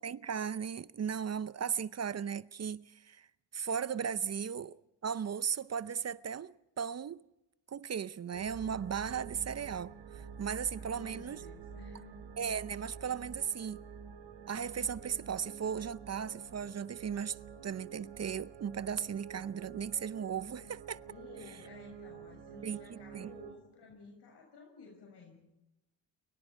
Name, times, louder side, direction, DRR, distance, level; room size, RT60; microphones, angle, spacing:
voice 1, 0.0-3.3 3.5-7.2 7.7-11.4 12.4-13.9 14.5-21.0 22.6-23.3, right 7 dB, 35° right, 0.7 m, -37 dB
sound 1, 8.3-23.5, right 7 dB, 75° right, 3.5 m, -49 dB
voice 2, 10.8-12.3 21.1-25.4, left 3 dB, 60° left, 7.1 m, -54 dB
29.5 x 24.0 x 4.6 m
cardioid pair, 80°, 45 cm